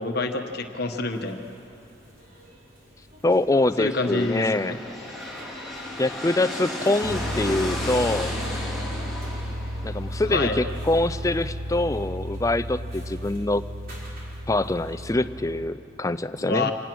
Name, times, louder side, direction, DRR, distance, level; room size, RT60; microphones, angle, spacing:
voice 1, 0.0-1.4 3.8-4.8 10.3-10.6 16.4-16.7, left 3 dB, 50° left, 5 dB, 1.3 m, -27 dB
sound 1, 1.1-15.1, equal, 45° right, 4.3 m, -52 dB
voice 2, 3.2-4.8 6.0-8.3 9.8-13.6 14.5-16.7, left 2 dB, 15° left, 12 dB, 0.4 m, -24 dB
sound 2, 3.7-11.4, left 1 dB, ahead, 3.7 m, -34 dB
sound 3, 7.0-15.7, equal, 75° right, 1.5 m, -33 dB
26.5 x 18.5 x 6.2 m, 2.9 s
head